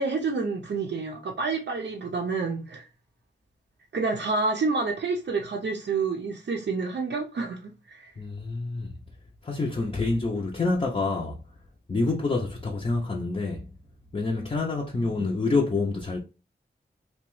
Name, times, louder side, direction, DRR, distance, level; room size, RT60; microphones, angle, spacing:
voice 1, 0.0-2.9 3.9-8.1 14.9-15.1, right 4 dB, 70° right, 0.5 m, -29 dB
voice 2, 8.2-9.0 9.4-11.4 11.9-13.7 14.1-16.2, left 3 dB, 30° left, 0.5 m, -27 dB
2.8 x 2.2 x 3.0 m
wide cardioid pair, 60°, 19 cm